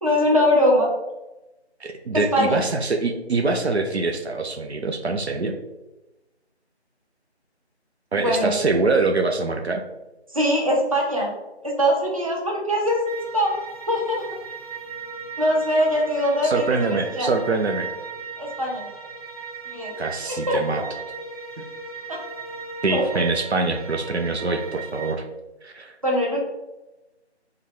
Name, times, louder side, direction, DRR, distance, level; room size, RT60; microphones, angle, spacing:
voice 1, 0.0-0.9 2.1-2.6 8.1-8.5 10.3-11.3 11.6-13.1 13.3-13.5 13.9-14.2 15.4-16.6 17.2-17.3 18.4-18.9 19.7-19.9 20.3-20.8 22.1-22.2 22.9-23.0 26.0-26.4, equal, 30° right, -2 dB, 0.7 m, -22 dB
voice 2, 1.8-5.5 8.1-9.8 16.4-17.9 20.0-20.8 21.6-21.7 22.8-25.2 25.6-26.0, right 3 dB, 70° right, 5 dB, 0.6 m, -24 dB
sound 1, 13.0-25.1, right 5 dB, 35° left, 0.5 m, -37 dB
5.6 x 2.3 x 3.5 m, 1.0 s
figure-of-eight pair, 170°, 34 cm